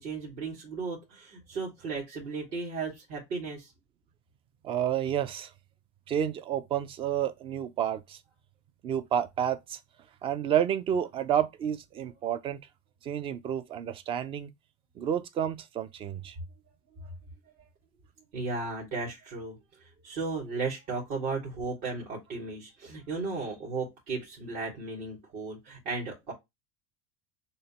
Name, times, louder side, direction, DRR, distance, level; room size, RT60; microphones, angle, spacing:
voice 1, 0.0-3.7 18.3-26.3, right 4 dB, 60° right, 2.3 m, -35 dB
voice 2, 4.6-5.5 6.1-8.2 8.8-9.8 10.2-12.6 13.0-14.5 15.0-16.4, right 9 dB, 35° right, 0.5 m, -30 dB
6.5 x 2.2 x 2.9 m
supercardioid pair, 120°, 15 cm